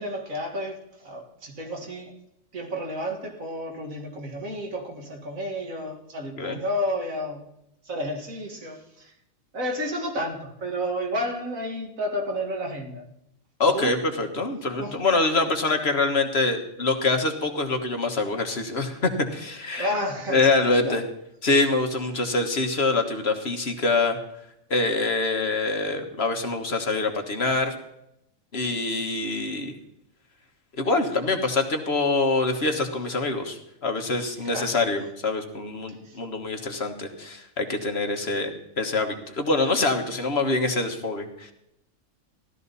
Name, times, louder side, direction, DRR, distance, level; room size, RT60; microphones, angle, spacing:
voice 1, 0.0-2.1 2.5-7.4 7.8-9.1 9.5-13.0 13.7-14.0 14.8-15.0 18.4-18.6 18.9-19.0 19.8-20.4 20.8-21.0 32.5-32.6 34.2-34.8 36.0-36.2, equal, 75° right, 2 dB, 2.4 m, -31 dB
voice 2, 13.6-19.9 20.3-21.0 21.4-24.2 24.7-27.7 28.5-29.8 30.8-41.5, left 3 dB, 50° left, 5 dB, 1.6 m, -25 dB
15.5 x 12.5 x 4.1 m, 0.81 s
omnidirectional pair, 1.4 m